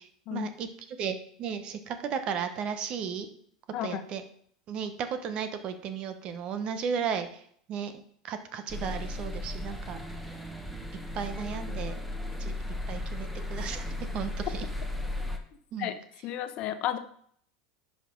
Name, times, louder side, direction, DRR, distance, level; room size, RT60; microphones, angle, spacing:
voice 1, 0.0-3.3 3.8-4.2 4.7-7.4 7.7-7.9 8.2-10.0 11.1-12.0 12.4-12.5 12.9-13.9 14.1-14.7 15.7-15.9, right 7 dB, 45° right, 9 dB, 1.1 m, -34 dB
voice 2, 3.7-4.0 15.8-15.9 16.2-17.0, left 12 dB, 50° left, 10 dB, 0.9 m, -32 dB
sound 1, 8.7-15.4, left 1 dB, 5° right, 1.3 m, -35 dB
10.5 x 5.3 x 3.9 m, 0.63 s
hypercardioid pair, 85°, 2 cm